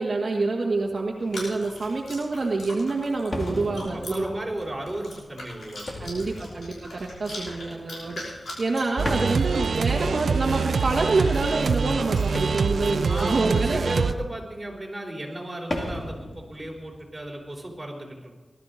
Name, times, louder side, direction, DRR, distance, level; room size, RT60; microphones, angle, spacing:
voice 1, 0.0-4.3 6.0-8.2 8.6-13.8, right 3 dB, 50° right, 0 dB, 1.4 m, -26 dB
sound 1, 0.8-1.4 2.1-2.2 3.3-7.6 8.0-8.7 9.0-10.6 12.3-14.0 15.7-17.8, left 1 dB, 35° left, 2.2 m, -37 dB
Chewing mastication, 1.2-13.3, left 1 dB, 80° left, 5.7 m, -43 dB
voice 2, 3.9-6.5 13.1-18.4, right 1 dB, 15° right, -1 dB, 4.3 m, -35 dB
sound 2, 9.0-14.1, right 5 dB, 85° right, 0.8 m, -25 dB
20.0 x 12.5 x 4.1 m, 1.2 s
wide cardioid pair, 95°, 0 cm